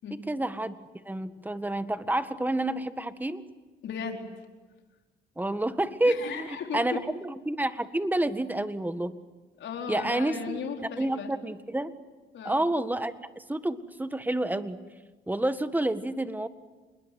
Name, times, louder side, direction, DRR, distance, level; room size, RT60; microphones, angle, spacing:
voice 1, 0.3-0.7 1.1-3.4 5.4-9.2 9.9-10.6 10.9-11.9 12.5-14.8 15.3-16.5, right 1 dB, 10° right, 11 dB, 1.7 m, -29 dB
voice 2, 3.8-4.3 6.0-7.0 9.6-11.3 12.3-12.6, left 6 dB, 70° left, 2 dB, 4.5 m, -36 dB
28.0 x 21.0 x 9.5 m, 1.2 s
cardioid pair, 90°, 20 cm